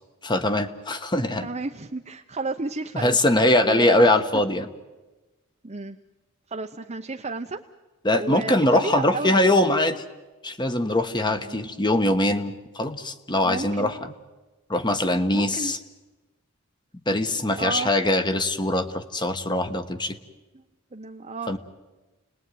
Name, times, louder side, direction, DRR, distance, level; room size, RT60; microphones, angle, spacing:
voice 1, 0.2-1.5 2.9-4.7 8.0-10.0 10.4-14.1 14.7-15.8 17.1-20.2 21.5-21.6, left 1 dB, 20° left, 9 dB, 1.4 m, -22 dB
voice 2, 1.4-3.2 3.6-4.0 4.3-4.4 5.6-6.0 6.5-7.6 8.2-9.4 11.3-11.7 13.4-13.9 15.3-15.7 17.6-17.9 20.5-20.6 20.9-21.6, right 3 dB, 30° right, 3 dB, 0.9 m, -32 dB
29.5 x 20.0 x 9.4 m, 1.2 s
head